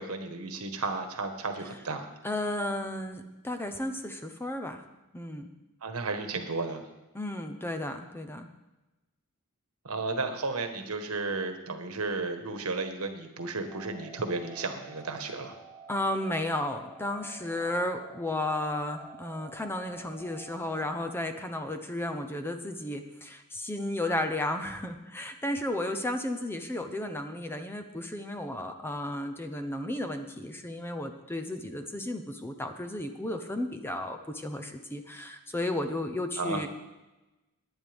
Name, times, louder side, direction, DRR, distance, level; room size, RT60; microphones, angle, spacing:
voice 1, 0.0-2.1 5.8-6.8 9.8-15.6 36.4-36.6, right 3 dB, 70° right, 6 dB, 1.4 m, -33 dB
voice 2, 2.2-4.8 5.1-5.5 7.1-8.5 15.9-36.7, left 1 dB, 10° left, 6 dB, 0.8 m, -33 dB
sound 1, 13.7-21.2, right 4 dB, 20° right, 3.6 m, -50 dB
19.0 x 9.9 x 3.5 m, 1.0 s
head